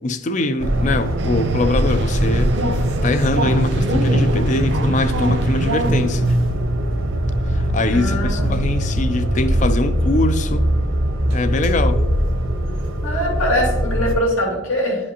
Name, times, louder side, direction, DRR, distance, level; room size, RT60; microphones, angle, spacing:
voice 1, 0.0-2.7 3.0-6.4 7.5-10.6 11.3-12.0, left 2 dB, 35° left, 0.4 m, -22 dB
sound 1, 0.6-14.1, right 1 dB, 75° right, 0.9 m, -20 dB
sound 2, 1.2-6.3, right 3 dB, 55° right, 0.4 m, -33 dB
voice 2, 7.9-8.5 13.0-15.1, equal, 80° left, 2.3 m, -22 dB
11.0 x 4.9 x 2.9 m
head